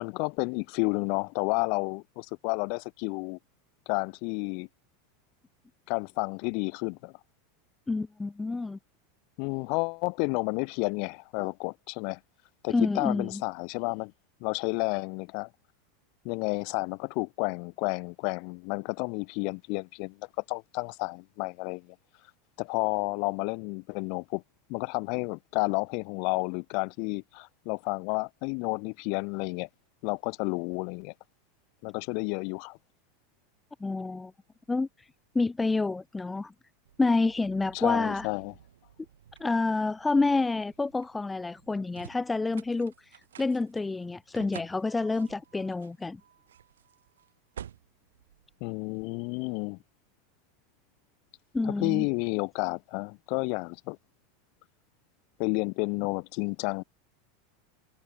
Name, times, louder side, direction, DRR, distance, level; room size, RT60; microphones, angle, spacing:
voice 1, 0.0-3.4 3.9-4.7 5.9-7.1 9.4-12.2 12.6-14.1 14.4-15.5 16.2-20.2 20.5-22.0 22.6-24.4 24.7-29.7 30.0-31.1 31.8-32.8 37.7-38.5 48.6-49.8 51.6-54.0 55.4-56.8, left 36 dB, 60° left, 0.5 m, -31 dB
voice 2, 7.9-8.8 12.7-13.4 33.8-34.3 34.7-35.1 35.3-36.5 37.0-38.3 39.4-46.2 51.5-52.1, left 3 dB, 10° left, 1.3 m, -28 dB
sound 1, 36.8-49.2, right 10 dB, 90° right, 2.9 m, -51 dB
hypercardioid pair, 110°, 0 cm